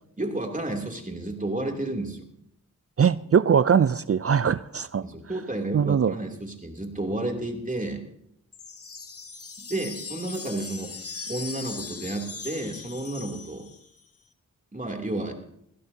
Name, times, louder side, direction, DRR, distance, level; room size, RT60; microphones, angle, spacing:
voice 1, 0.2-2.3 5.0-8.0 9.6-10.9 11.3-13.7 14.7-15.3, right 2 dB, 25° right, 2 dB, 2.9 m, -31 dB
voice 2, 3.0-5.0 5.7-6.1, right 7 dB, 45° right, 17 dB, 0.4 m, -21 dB
sound 1, 8.5-14.0, left 4 dB, 45° left, 1.2 m, -39 dB
21.0 x 16.5 x 2.8 m, 0.74 s
cardioid pair, 55°, 33 cm